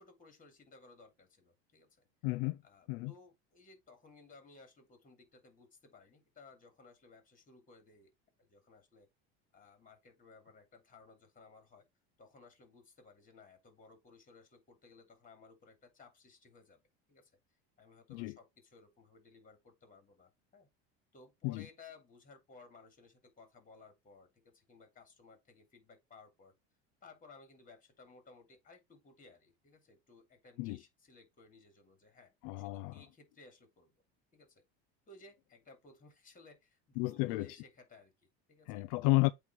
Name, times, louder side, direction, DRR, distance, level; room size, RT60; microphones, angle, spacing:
voice 1, 0.0-2.1 2.6-8.1 8.4-9.1 9.5-11.8 12.2-16.8 17.1-17.3 17.8-20.7 21.1-26.5 27.0-33.9 34.3-34.6 35.1-38.8, left 3 dB, 25° left, 2.9 m, -59 dB
voice 2, 2.2-2.6 2.9-3.1 18.1-18.3 21.4-21.7 30.6-30.8 32.4-33.0 37.0-37.5 38.7-39.3, left 23 dB, 70° left, 0.5 m, -32 dB
8.3 x 3.2 x 4.4 m
supercardioid pair, 120°, 32 cm